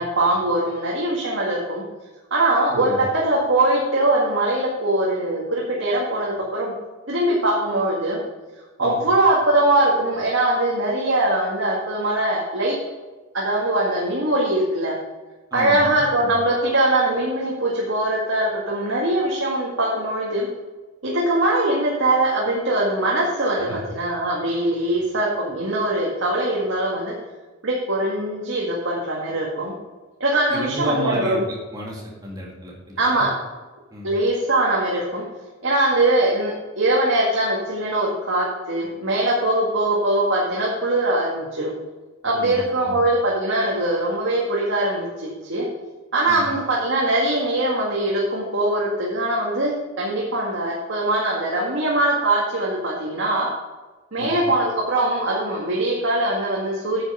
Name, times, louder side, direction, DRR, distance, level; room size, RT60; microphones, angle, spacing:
voice 1, 0.0-1.8 2.3-6.7 7.1-8.2 8.8-12.8 13.3-15.0 15.5-20.5 21.0-27.1 27.6-29.7 30.2-31.4 33.0-33.3 34.0-35.2 35.6-41.7 42.2-45.7 46.1-53.5 54.1-57.0, right 1 dB, 60° right, -4 dB, 1.9 m, -22 dB
voice 2, 2.7-3.1 8.8-9.0 15.5-16.3 23.7-23.8 24.9-25.0 30.5-31.5 31.7-33.3 33.9-34.1 42.3-43.0 46.3-46.5 54.2-54.4, equal, 15° right, -3 dB, 2.2 m, -31 dB
9.8 x 6.5 x 5.7 m, 1.2 s
head